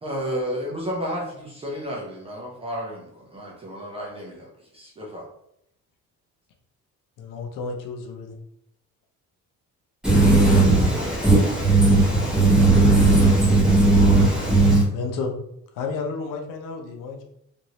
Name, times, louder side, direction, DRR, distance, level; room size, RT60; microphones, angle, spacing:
voice 1, 0.0-4.5 4.7-5.3, equal, 20° right, 0.5 m, -32 dB
voice 2, 7.2-8.3 14.9-15.3 15.7-17.2, left 4 dB, 80° left, 0.7 m, -31 dB
voice 3, 10.0-14.8, right 2 dB, 5° right, 1.2 m, -16 dB
3.0 x 2.6 x 2.8 m
cardioid pair, 155°, 31 cm